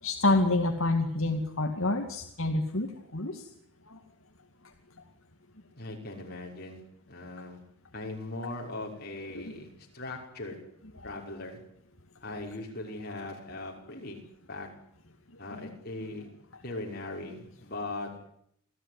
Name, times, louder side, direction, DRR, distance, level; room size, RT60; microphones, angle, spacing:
voice 1, 0.0-3.5 3.9-4.0 9.3-9.5 11.0-11.1 15.5-15.7, left 2 dB, 65° left, 3 dB, 2.4 m, -28 dB
voice 2, 5.8-6.8 7.1-7.6 7.9-9.7 9.9-10.6 11.0-11.6 12.2-14.2 14.5-14.7 15.4-16.3 16.6-18.1, left 2 dB, 45° left, 0 dB, 6.1 m, -39 dB
27.5 x 16.0 x 9.9 m, 0.69 s
head